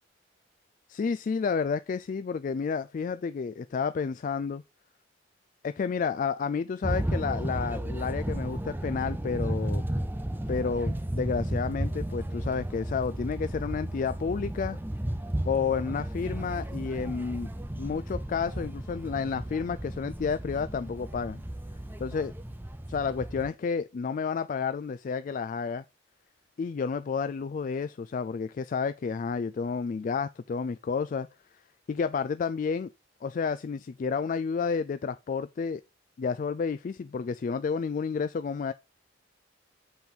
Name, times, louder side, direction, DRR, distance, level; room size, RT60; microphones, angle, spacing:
voice 1, 0.9-4.6 5.6-9.8 10.5-14.8 15.5-17.5 17.8-21.4 22.0-22.3 22.9-25.8 26.6-31.3 31.9-32.9 33.2-35.8 36.2-38.7, left 5 dB, 45° left, 0.3 m, -30 dB
sound 1, 6.8-23.5, right 1 dB, 10° right, 0.5 m, -34 dB
7.8 x 4.4 x 5.3 m
head